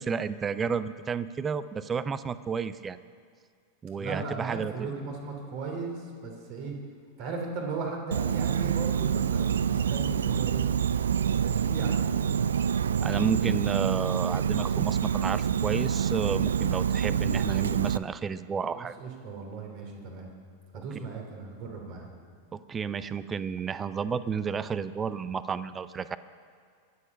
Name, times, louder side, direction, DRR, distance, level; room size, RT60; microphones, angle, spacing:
voice 1, 0.0-3.0 3.8-4.7 13.0-18.9 22.5-26.2, right 6 dB, 20° right, 15 dB, 0.6 m, -31 dB
voice 2, 4.0-6.7 7.2-10.6 11.4-12.2 18.6-20.3 20.7-22.1, right 4 dB, 45° right, 1 dB, 3.1 m, -37 dB
Insect, 8.1-18.0, right 8 dB, 65° right, 0.4 m, -27 dB
22.5 x 8.4 x 5.4 m, 2.2 s
figure-of-eight pair, 90°, 0 cm